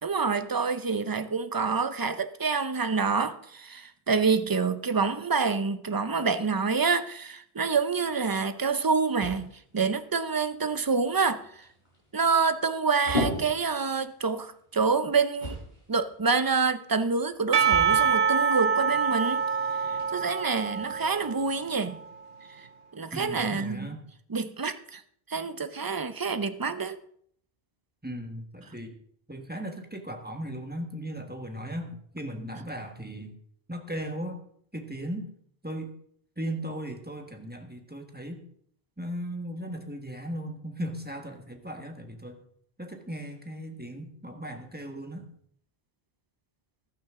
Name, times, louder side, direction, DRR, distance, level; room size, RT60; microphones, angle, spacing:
voice 1, 0.0-11.6 12.1-15.6 15.9-19.4 19.8-22.0 22.6-22.7 22.9-24.0 24.3-25.0 25.3-27.0, right 5 dB, 25° right, 12 dB, 0.5 m, -27 dB
sound 1, 7.9-21.3, left 1 dB, 45° left, 4.8 m, -40 dB
Percussion / Church bell, 17.5-21.9, right 6 dB, 75° right, 1.0 m, -26 dB
voice 2, 23.1-24.0 28.0-28.9 29.3-33.3 33.7-34.4 34.7-35.2 35.6-35.9 36.4-38.4 39.0-42.4 42.8-45.3, equal, 10° right, 4 dB, 1.4 m, -37 dB
15.0 x 12.0 x 3.7 m, 0.64 s
omnidirectional pair, 1.0 m